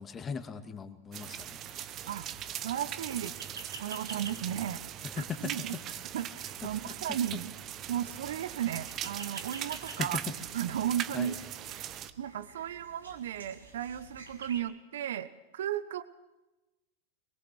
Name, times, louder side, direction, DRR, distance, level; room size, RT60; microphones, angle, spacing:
voice 1, 0.0-1.6 4.3-4.5 5.0-5.8 6.8-6.9 10.0-10.1 11.1-11.4, left 6 dB, 25° left, 8 dB, 2.3 m, -39 dB
sound 1, 1.1-12.1, right 11 dB, 35° right, 1.0 m, -40 dB
sound 2, 1.3-14.6, right 3 dB, 80° right, 5.0 m, -50 dB
voice 2, 2.1-3.3 3.8-4.8 5.2-5.7 6.1-7.5 7.9-10.2 10.5-11.3 11.7-16.0, right 10 dB, 65° right, 14 dB, 1.0 m, -35 dB
23.5 x 22.0 x 6.2 m, 1.0 s
figure-of-eight pair, 90°, 0 cm